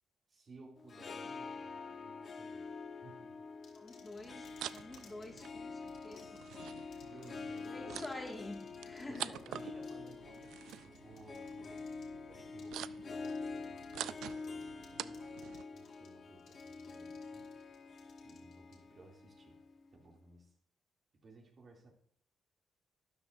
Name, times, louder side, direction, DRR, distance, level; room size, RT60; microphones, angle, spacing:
voice 1, 0.3-2.7 3.0-3.4 7.0-8.1 9.1-10.5 10.8-11.9 12.2-15.3 15.7-17.5 18.2-19.6 19.9-20.5 21.2-21.9, right 2 dB, 45° right, 0 dB, 2.7 m, -57 dB
Harp, 0.8-20.1, left 4 dB, 50° left, 1.1 m, -47 dB
sound 1, 3.6-5.5 5.9-6.6 6.9-7.3 7.6-7.7 8.1-9.1 9.3-12.1 12.6-12.7 13.2-13.9 14.2-14.9 15.1-16.1 16.4-18.8, left 6 dB, 65° left, 2.7 m, -62 dB
voice 2, 3.7-6.4 6.7-7.1 7.7-9.4, left 2 dB, 20° left, 1 dB, 2.0 m, -48 dB
sound 2, 4.2-15.6, right 12 dB, 85° right, 0.3 m, -48 dB
12.5 x 9.9 x 2.6 m, 0.66 s
cardioid pair, 90°, 0 cm